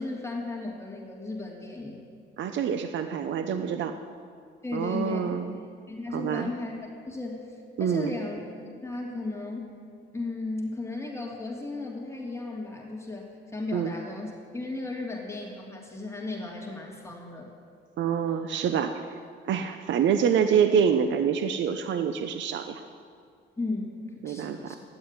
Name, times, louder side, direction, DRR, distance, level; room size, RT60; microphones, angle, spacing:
voice 1, 0.0-2.1 4.6-6.7 7.1-8.4 8.8-9.7 10.1-17.5 23.6-24.8, left 2 dB, 15° left, -2 dB, 2.8 m, -35 dB
voice 2, 2.4-4.0 4.7-5.6 6.1-6.5 7.8-8.1 13.7-13.9 18.0-19.1 19.4-22.8 24.2-24.7, right 7 dB, 70° right, 8 dB, 0.8 m, -26 dB
12.5 x 10.0 x 9.8 m, 2.3 s
cardioid pair, 90°, 20 cm